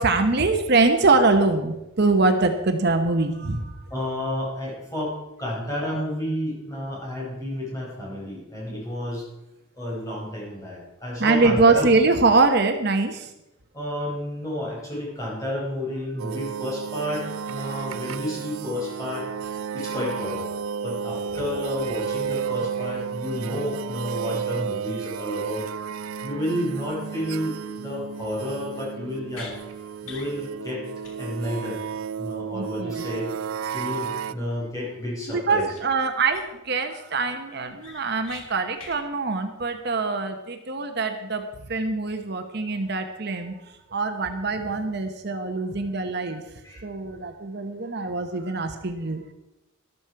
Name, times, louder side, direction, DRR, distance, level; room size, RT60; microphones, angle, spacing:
voice 1, 0.0-3.8 11.2-13.3 32.5-33.1 35.3-41.4 41.7-43.5 43.9-46.4 46.8-49.2, right 3 dB, 50° right, 6 dB, 1.0 m, -23 dB
voice 2, 3.9-9.2 9.8-11.9 13.7-19.3 19.7-20.4 20.8-25.6 26.2-29.5 30.0-30.8 31.2-31.8 32.2-33.3 33.7-35.7 46.6-46.8, left 1 dB, 15° left, -4 dB, 5.0 m, -31 dB
sound 1, 16.2-34.3, right 7 dB, 85° right, 0.5 m, -32 dB
sound 2, 29.3-29.6 30.0-30.3 30.6-30.7 31.0-31.2 31.4-31.5 35.7-35.8 36.3-36.7 37.1-37.2 37.5-38.4 38.8-39.0, left 4 dB, 80° left, 3.0 m, -42 dB
13.5 x 12.5 x 4.7 m, 0.95 s
head